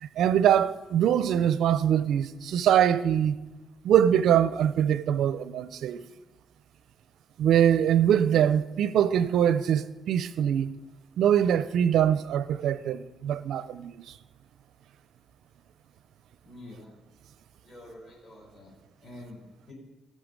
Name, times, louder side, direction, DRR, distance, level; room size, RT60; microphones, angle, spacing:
voice 1, 0.0-3.4 3.8-6.0 7.4-10.7 11.2-14.0, right 9 dB, 75° right, 0.5 m, -23 dB
voice 2, 16.4-16.9 17.6-18.7 19.0-19.7, left 1 dB, 40° left, 4.6 m, -47 dB
16.5 x 6.5 x 5.3 m
cardioid pair, 90°, 0 cm